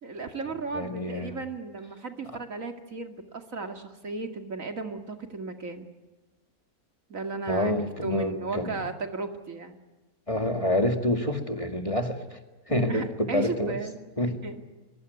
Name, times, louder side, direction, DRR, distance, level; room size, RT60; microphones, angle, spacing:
voice 1, 0.0-5.9 7.1-7.7 8.0-9.8 12.8-14.0 14.4-14.6, right 4 dB, 65° right, 6 dB, 2.6 m, -35 dB
voice 2, 0.7-1.4 7.5-8.8 10.3-12.4 12.7-13.8 14.2-14.4, left 1 dB, 20° left, 6 dB, 2.2 m, -27 dB
23.0 x 22.0 x 9.5 m, 1.2 s
omnidirectional pair, 1.5 m